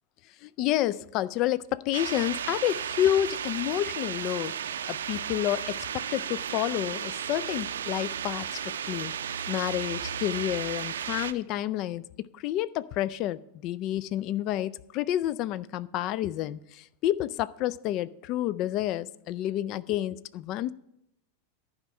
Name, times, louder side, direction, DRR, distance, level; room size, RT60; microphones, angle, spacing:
voice 1, 0.4-4.5 4.9-9.1 9.5-12.1 12.3-20.7, left 13 dB, 40° left, 0.4 m, -29 dB
sound 1, 1.9-11.3, right 8 dB, 65° right, 0.5 m, -34 dB
11.5 x 5.0 x 8.4 m
figure-of-eight pair, 90°, 0 cm